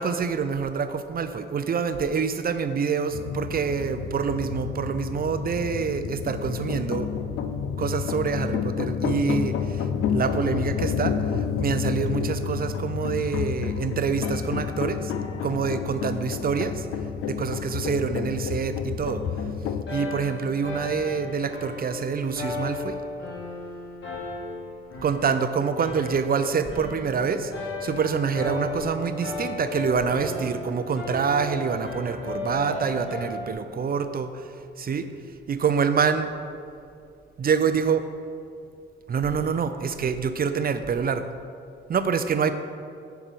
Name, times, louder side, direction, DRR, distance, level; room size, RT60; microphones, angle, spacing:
voice 1, 0.0-7.1 7.8-9.5 10.1-11.1 11.6-15.1 15.4-16.8 17.3-19.2 19.9-23.0 25.0-27.5 27.8-34.3 34.8-35.1 35.5-36.3 37.4-38.1 39.1-41.3 41.9-42.5, right 6 dB, 45° right, 10 dB, 0.5 m, -26 dB
sound 1, 3.1-19.8, left 7 dB, 90° left, 0.4 m, -29 dB
sound 2, 19.9-33.5, left 3 dB, 60° left, 1.7 m, -35 dB
5.8 x 5.0 x 6.3 m, 2.4 s
cardioid pair, 65°, 21 cm